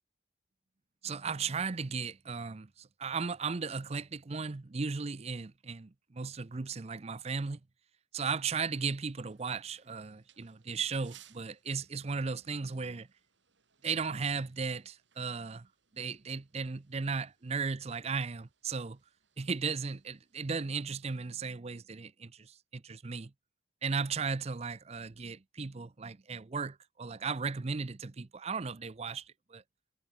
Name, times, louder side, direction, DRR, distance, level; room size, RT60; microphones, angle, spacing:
voice 1, 1.0-7.6 8.1-13.1 13.8-15.7 15.9-19.0 19.4-23.3 23.8-29.6, right 5 dB, 35° right, 0.5 m, -36 dB
sound 1, 8.8-21.3, right 11 dB, 70° right, 6.0 m, -66 dB
head